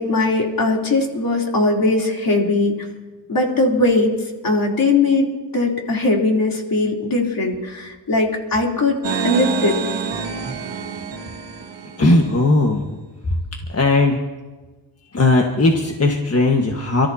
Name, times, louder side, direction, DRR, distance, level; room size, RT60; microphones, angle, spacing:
voice 1, 0.0-2.8 3.3-4.1 4.4-5.3 5.5-9.0 9.2-9.8, left 2 dB, 45° left, -1 dB, 3.4 m, -19 dB
sound 1, 9.0-12.3, right 6 dB, 65° right, 2.0 m, -27 dB
voice 2, 12.0-12.8 13.7-14.2 15.1-17.1, left 2 dB, 30° left, 1 dB, 1.6 m, -17 dB
29.0 x 14.0 x 2.8 m, 1.2 s
cardioid pair, 90°, 46 cm